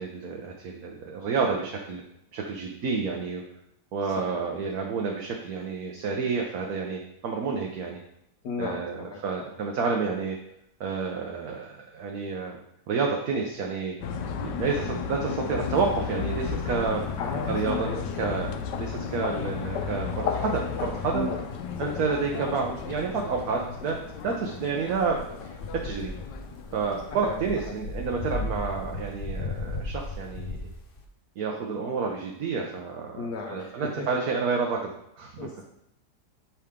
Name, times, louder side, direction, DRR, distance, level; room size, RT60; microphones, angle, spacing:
voice 1, 0.0-2.0 2.3-3.4 3.9-8.0 8.6-10.4 10.8-12.6 12.9-14.0 14.4-17.1 17.4-17.9 18.2-21.3 21.8-26.2 26.7-30.6 31.4-35.5, right 5 dB, 65° right, 1 dB, 1.2 m, -30 dB
voice 2, 4.0-4.4 8.4-9.5 17.2-18.0 21.1-21.4 27.2-27.4 27.6-27.7 33.2-34.1 35.4-35.6, left 4 dB, 65° left, -1 dB, 1.3 m, -35 dB
sound 1, 14.0-27.6, left 7 dB, 85° left, 1.3 m, -33 dB
sound 2, 15.5-17.8 18.2-19.0 20.1-20.3 20.7-21.3 22.5-23.3 24.9-31.0, left 2 dB, 45° left, 0.8 m, -37 dB
8.5 x 5.0 x 3.6 m, 0.80 s
omnidirectional pair, 1.8 m